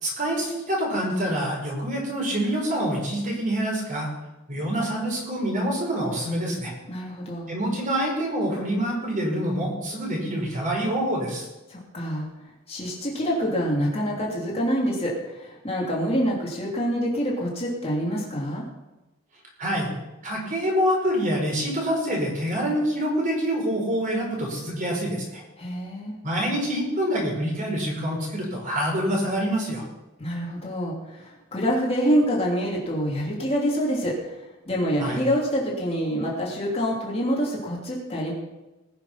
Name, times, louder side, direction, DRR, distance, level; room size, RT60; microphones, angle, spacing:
voice 1, 0.0-4.1 4.5-6.7 7.5-11.5 19.6-19.9 20.2-25.4 26.2-29.8 35.0-35.2, equal, 40° right, -1 dB, 4.8 m, -26 dB
voice 2, 6.9-7.5 11.7-12.3 12.7-18.6 25.6-26.2 30.2-34.2 34.7-38.3, equal, 30° left, -3 dB, 3.1 m, -26 dB
20.0 x 6.9 x 5.9 m, 1.0 s
head